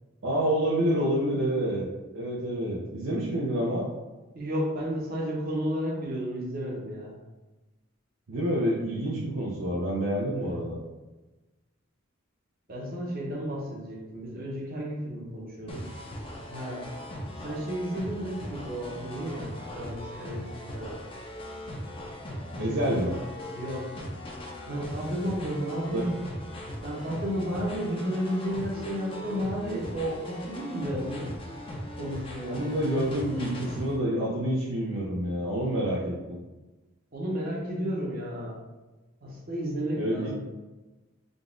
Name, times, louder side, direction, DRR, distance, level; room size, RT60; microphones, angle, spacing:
voice 1, 0.2-3.9 8.3-10.8 22.6-23.1 25.9-26.1 32.4-36.4 39.9-40.3, right 1 dB, 65° right, -4 dB, 0.6 m, -28 dB
voice 2, 4.3-7.1 10.3-10.6 12.7-15.9 16.5-16.8 17.4-21.0 22.6-23.1 23.5-23.9 24.7-26.2 26.8-31.3 32.0-32.7 37.1-38.6 39.2-40.3, equal, 45° right, -3 dB, 1.0 m, -32 dB
sound 1, 15.7-34.0, equal, 25° left, 0.5 m, -39 dB
3.8 x 2.3 x 3.7 m, 1.1 s
head